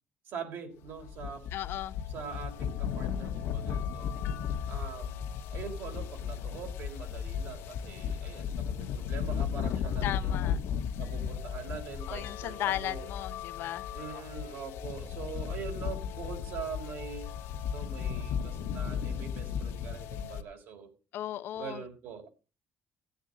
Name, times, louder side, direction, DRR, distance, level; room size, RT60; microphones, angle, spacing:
voice 1, 0.3-1.4 2.1-4.1 4.7-5.2 5.5-10.6 11.0-13.1 13.9-17.3 17.7-20.9 21.5-22.3, right 6 dB, 60° right, 3.9 m, -43 dB
sound 1, 0.8-20.4, left 8 dB, 85° left, 1.4 m, -35 dB
voice 2, 1.5-2.0 10.0-10.6 12.1-13.9 14.1-14.2 21.1-21.8, left 13 dB, 60° left, 0.7 m, -36 dB
17.0 x 8.2 x 4.0 m
cardioid pair, 165°, 4 cm